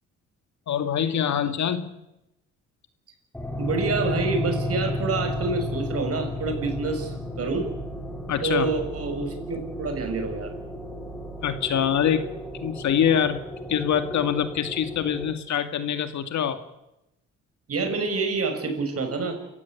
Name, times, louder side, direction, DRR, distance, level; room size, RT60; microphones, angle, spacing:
voice 1, 0.7-1.9 8.3-8.7 11.4-12.3 12.6-13.4 13.7-16.6, left 9 dB, 65° left, 8 dB, 2.4 m, -24 dB
sound 1, 3.3-15.3, left 1 dB, 5° left, 4.6 m, -33 dB
voice 2, 3.6-7.7 8.4-10.5 17.7-19.4, right 4 dB, 50° right, 6 dB, 6.7 m, -27 dB
28.5 x 15.5 x 8.7 m, 0.90 s
cardioid pair, 90°, 30 cm